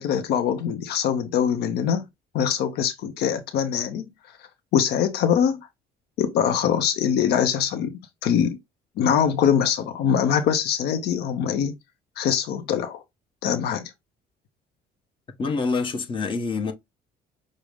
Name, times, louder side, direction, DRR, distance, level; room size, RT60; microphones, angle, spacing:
voice 1, 0.0-2.1 2.3-4.0 4.7-5.7 6.2-8.6 9.0-11.8 12.2-13.0 13.4-13.9, left 8 dB, 75° left, 0.6 m, -23 dB
voice 2, 15.4-16.7, left 4 dB, 30° left, 0.9 m, -26 dB
6.1 x 2.0 x 3.4 m
cardioid pair, 110°, 17 cm